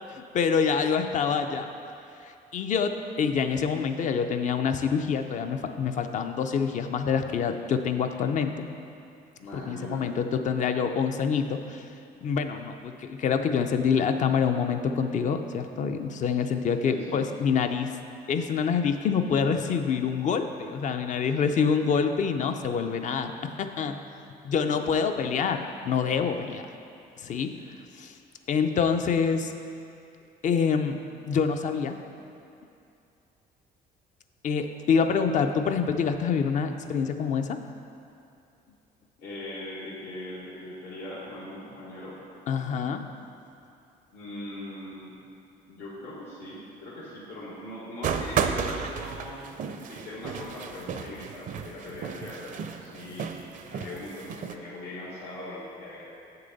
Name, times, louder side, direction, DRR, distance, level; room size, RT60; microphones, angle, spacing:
voice 1, 0.1-1.7 2.5-8.7 9.7-11.8 12.2-17.9 18.3-24.0 24.4-26.6 27.2-27.5 28.0-28.1 28.5-29.5 30.4-31.0 31.3-32.0 34.4-37.6 42.5-43.0, left 6 dB, 45° left, 7 dB, 0.5 m, -26 dB
voice 2, 9.4-10.2 16.9-17.2 24.6-24.9 39.2-42.2 44.1-45.2 45.7-49.4 49.9-53.4 53.7-56.0, left 1 dB, 85° left, -10 dB, 1.8 m, -40 dB
sound 1, 48.0-54.6, right 7 dB, 50° right, 0.5 m, -33 dB
7.6 x 6.8 x 4.0 m, 2.6 s
cardioid pair, 110°, 17 cm